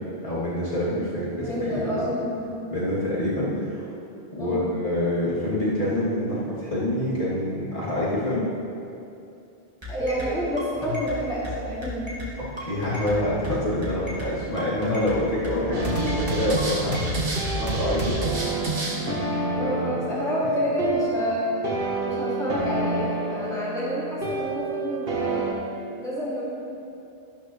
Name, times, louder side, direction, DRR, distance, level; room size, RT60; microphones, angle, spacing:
voice 1, 0.2-2.0 2.7-3.8 4.3-8.4 12.6-17.0 17.5-18.5 19.6-20.1, left 1 dB, 55° left, -10 dB, 3.2 m, -26 dB
voice 2, 1.4-2.6 4.4-4.6 9.9-12.2 19.6-21.6 22.0-25.5 26.0-26.4, equal, 5° left, -9 dB, 2.7 m, -28 dB
sound 1, 9.8-17.6, left 2 dB, 25° right, 2.2 m, -34 dB
sound 2, 15.7-25.5, right 2 dB, 65° right, 1.6 m, -28 dB
12.5 x 12.0 x 3.3 m, 2.6 s
omnidirectional pair, 1.1 m